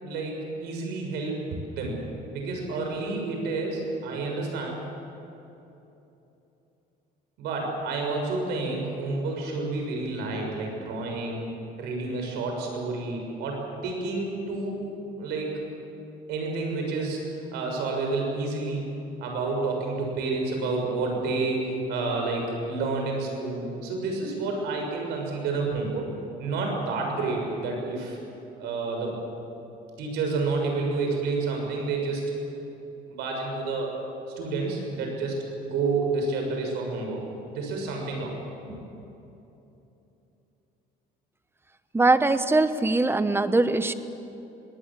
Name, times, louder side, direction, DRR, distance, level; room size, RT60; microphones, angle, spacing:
voice 1, 0.0-1.4 1.7-1.9 2.3-4.8 7.4-11.5 11.8-14.8 15.2-15.6 16.3-17.2 17.5-18.9 19.2-26.1 26.4-28.2 28.6-29.1 30.0-32.3 33.1-34.0 34.4-37.2 37.5-38.3 38.7-38.8, right 3 dB, 85° right, 1 dB, 6.6 m, -29 dB
voice 2, 41.9-43.9, right 2 dB, 15° right, 11 dB, 1.1 m, -21 dB
24.5 x 20.0 x 7.6 m, 3.0 s
cardioid pair, 110°, 17 cm